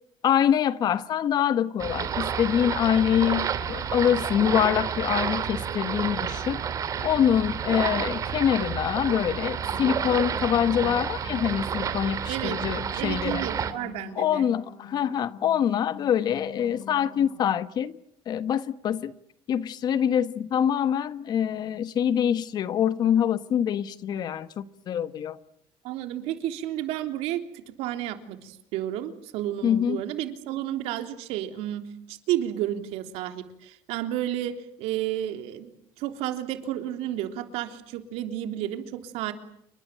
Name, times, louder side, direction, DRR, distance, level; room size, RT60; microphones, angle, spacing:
voice 1, 0.2-6.6 7.0-13.5 14.2-18.0 18.3-19.1 19.5-25.4 29.6-30.0, left 9 dB, 40° left, 1.2 m, -25 dB
sound 1, 1.8-13.7, right 7 dB, 35° right, 2.6 m, -30 dB
sound 2, 9.4-17.4, left 6 dB, 80° left, 5.8 m, -45 dB
voice 2, 12.3-12.6 13.0-14.5 25.8-35.7 36.0-39.3, right 12 dB, 80° right, 3.4 m, -31 dB
29.5 x 23.5 x 7.6 m
cardioid pair, 165°, 10 cm